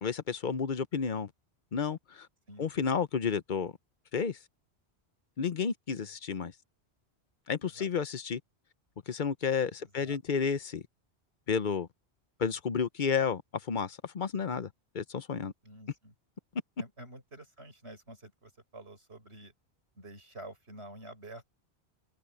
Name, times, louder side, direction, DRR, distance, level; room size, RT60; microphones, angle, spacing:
voice 1, 0.0-1.3 1.7-2.3 2.6-3.7 4.1-4.4 5.4-6.5 7.5-8.4 9.1-10.8 11.5-11.9 12.4-13.4 13.7-14.7 14.9-15.5, left 6 dB, 50° left, 0.9 m, -31 dB
voice 2, 9.8-10.2 15.6-16.1 16.8-19.5 20.0-21.5, right 1 dB, 75° right, 7.3 m, -49 dB
omnidirectional pair, 1.1 m